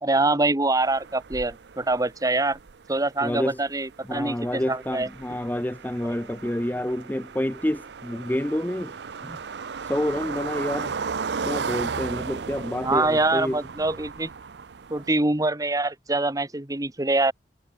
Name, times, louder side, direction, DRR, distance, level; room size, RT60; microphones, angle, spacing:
voice 1, 0.0-2.6 2.9-5.1 12.8-14.3 14.9-17.3, right 2 dB, 20° right, 1.4 m, -24 dB
sound 1, 0.8-15.1, right 5 dB, 65° right, 0.6 m, -35 dB
voice 2, 3.2-3.6 4.1-9.0 9.2-9.4 9.9-10.9 11.4-13.6, left 1 dB, 10° left, 0.7 m, -28 dB
head